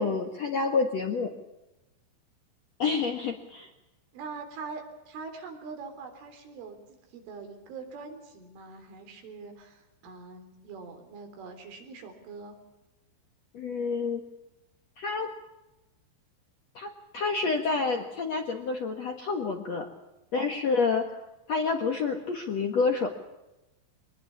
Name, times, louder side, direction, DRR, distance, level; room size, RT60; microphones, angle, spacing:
voice 1, 0.0-1.3 2.8-3.7 13.5-14.2 15.0-15.3 16.8-19.9 20.3-21.2 21.5-23.1, left 4 dB, 60° left, 4 dB, 1.8 m, -28 dB
voice 2, 4.1-12.5, right 4 dB, 90° right, 5 dB, 6.2 m, -43 dB
24.0 x 20.5 x 7.0 m, 0.96 s
omnidirectional pair, 5.4 m